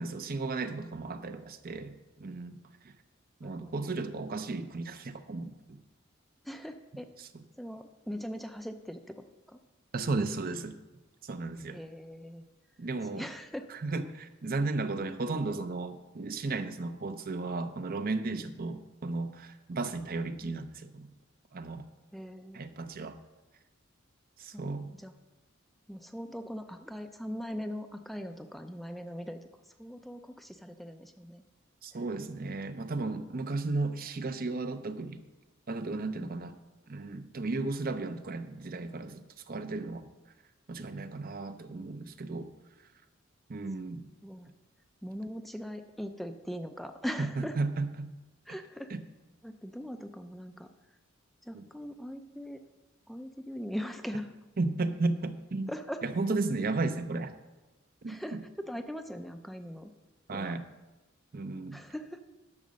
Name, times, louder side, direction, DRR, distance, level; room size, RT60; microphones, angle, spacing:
voice 1, 0.0-2.6 2.8-2.9 3.4-5.8 7.2-7.3 9.9-10.8 11.2-11.8 12.8-13.3 13.7-21.1 21.5-21.9 22.5-23.2 24.4-24.9 31.8-35.2 35.7-36.6 36.9-40.1 40.7-42.5 43.5-44.1 47.2-48.1 48.9-49.0 51.5-51.6 54.6-55.7 56.0-57.3 58.0-58.4 60.3-60.6 61.3-61.8, right 3 dB, 45° right, 9 dB, 0.6 m, -34 dB
voice 2, 3.4-3.8 6.4-7.1 7.6-9.6 11.7-12.5 13.1-13.7 20.4-20.5 22.1-22.7 24.5-25.1 25.9-29.4 29.7-31.4 31.9-32.0 36.2-36.5 44.2-44.5 45.0-47.6 48.5-48.9 49.4-50.7 51.4-52.6 53.1-54.3 55.7-56.0 58.1-59.9 60.3-60.5 61.7-62.2, equal, ahead, 6 dB, 0.4 m, -40 dB
10.5 x 6.4 x 6.3 m, 1.1 s
head